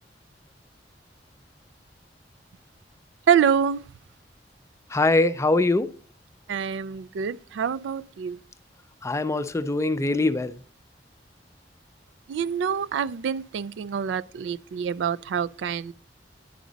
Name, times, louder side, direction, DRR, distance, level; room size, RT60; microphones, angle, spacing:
voice 1, 3.3-3.8 6.5-8.4 12.3-15.9, right 7 dB, 80° right, 0.3 m, -26 dB
voice 2, 4.9-5.9 9.0-10.6, left 2 dB, 15° left, 0.4 m, -23 dB
10.5 x 5.1 x 3.9 m
head